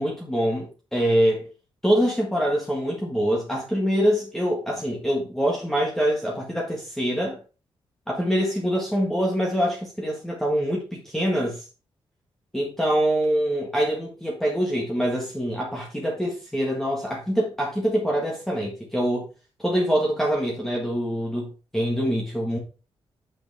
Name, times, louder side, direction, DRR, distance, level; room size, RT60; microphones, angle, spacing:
voice 1, 0.0-1.5 1.8-7.4 8.1-11.6 12.5-19.2 19.6-22.6, equal, 5° left, 1.6 m, -24 dB
8.3 x 6.4 x 3.5 m
wide cardioid pair, 160°, 10 cm